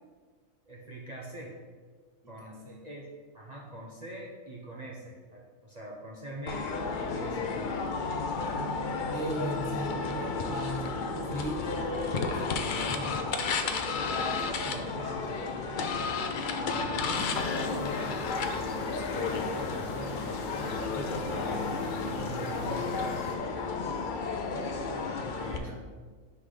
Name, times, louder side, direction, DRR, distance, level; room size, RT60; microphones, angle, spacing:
voice 1, 0.7-1.6 2.3-7.9 13.7-13.8 14.1-15.4 16.6-19.0 19.5-23.7 25.5-25.7, right 1 dB, 40° right, -3 dB, 0.7 m, -43 dB
voice 2, 2.2-2.8 8.4-8.7 9.1-13.4 16.6-17.1 25.2-25.8, equal, 20° left, -4 dB, 0.6 m, -37 dB
sound 1, 6.5-25.6, left 4 dB, 90° left, 0.4 m, -32 dB
sound 2, 17.1-23.4, left 3 dB, 70° left, 1.1 m, -40 dB
5.6 x 3.9 x 4.9 m, 1.5 s
omnidirectional pair, 1.4 m